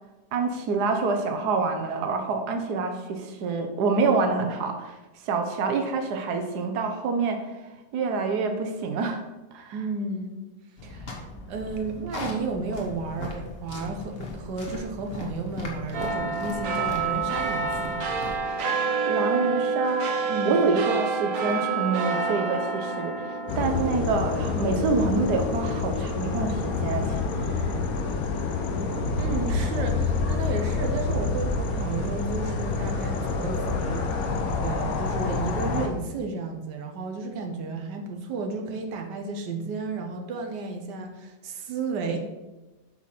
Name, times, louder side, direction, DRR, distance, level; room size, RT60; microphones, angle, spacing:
voice 1, 0.3-4.9 5.2-7.6 7.9-9.2 9.5-9.8 19.1-23.2 23.6-27.7, right 4 dB, 75° right, 5 dB, 1.4 m, -27 dB
voice 2, 9.7-10.4 10.8-11.2 11.5-18.0 20.3-20.6 29.2-42.2, right 3 dB, 90° right, 3 dB, 1.5 m, -33 dB
sound 1, 10.8-18.4, left 2 dB, 40° left, 1.4 m, -38 dB
sound 2, 15.9-26.7 27.1-27.2, right 4 dB, 55° right, 1.3 m, -28 dB
sound 3, 23.5-35.9, left 4 dB, 65° left, 1.2 m, -27 dB
8.4 x 5.8 x 4.3 m, 1.1 s
omnidirectional pair, 1.8 m